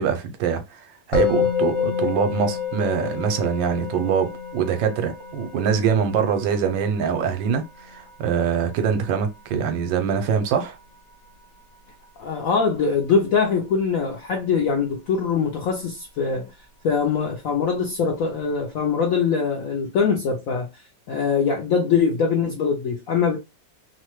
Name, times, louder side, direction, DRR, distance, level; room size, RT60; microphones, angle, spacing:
voice 1, 0.0-10.8, right 7 dB, 80° right, 1.3 m, -24 dB
Musical instrument, 1.1-12.2, left 7 dB, 60° left, 1.2 m, -30 dB
voice 2, 12.2-16.5 16.8-23.4, left 5 dB, 75° left, 0.7 m, -23 dB
3.1 x 2.1 x 3.0 m
omnidirectional pair, 2.1 m